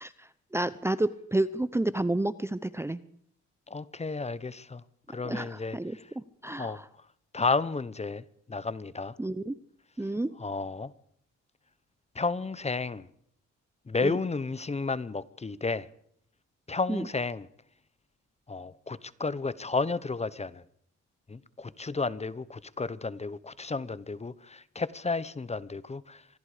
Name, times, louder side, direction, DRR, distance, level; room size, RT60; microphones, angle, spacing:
voice 1, 0.0-3.0 5.2-6.9 9.2-9.6 10.0-10.3 14.0-14.2 16.9-17.1, right 1 dB, 10° right, 0.8 m, -30 dB
voice 2, 3.7-6.0 6.6-6.8 7.3-9.2 10.4-10.9 12.1-13.1 13.9-15.9 16.7-17.5 18.5-20.6 21.3-26.3, left 3 dB, 20° left, 0.9 m, -32 dB
26.0 x 20.0 x 5.1 m
cardioid pair, 90°, 30 cm